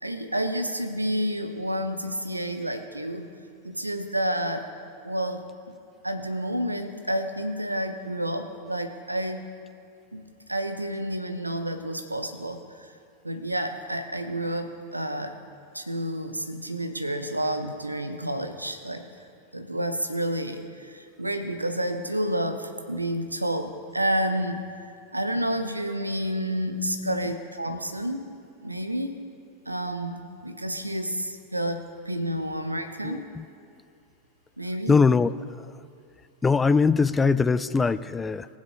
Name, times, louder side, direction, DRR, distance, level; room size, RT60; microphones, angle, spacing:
voice 1, 0.0-3.3 3.6-4.6 5.0-5.4 6.0-9.5 10.1-10.2 10.5-12.9 13.2-15.3 15.7-19.1 19.5-24.6 25.1-28.3 28.6-29.1 29.7-33.3 34.6-35.0, right 1 dB, 85° right, 8 dB, 0.9 m, -30 dB
voice 2, 26.8-27.3 33.0-33.4 34.9-35.3 36.4-38.5, left 4 dB, 15° left, 15 dB, 0.4 m, -22 dB
19.5 x 7.5 x 4.8 m, 2.4 s
figure-of-eight pair, 90°, 0 cm